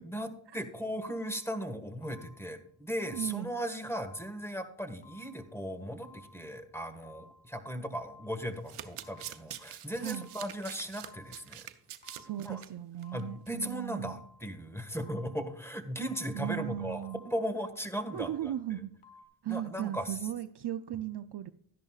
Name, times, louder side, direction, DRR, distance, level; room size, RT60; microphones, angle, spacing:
voice 1, 0.5-11.6 12.4-12.6 13.1-18.3 19.5-20.1, equal, 5° left, 9 dB, 1.6 m, -37 dB
sound 1, 1.0-1.6 2.0-2.6 3.0-3.6 4.0-4.6 5.0-5.6 6.0-6.6 7.0-7.6 8.0-8.6 9.0-9.6 10.0-10.6 11.0-11.6 12.0-12.6 13.0-13.6 14.0-14.6 15.0-15.6 16.0-16.6 17.0-17.6 18.0-18.6 19.0-19.2, left 3 dB, 80° left, 1.3 m, -57 dB
voice 2, 3.1-3.5 10.0-10.3 12.1-14.2 16.3-17.2 18.1-18.9 19.4-21.5, right 12 dB, 55° right, 12 dB, 0.6 m, -37 dB
Domestic sounds home sounds, 8.4-12.7 13.0-13.2 13.5-13.6, right 11 dB, 80° right, 0.8 m, -45 dB
13.0 x 10.5 x 2.4 m, 0.66 s
cardioid pair, 50°, 50 cm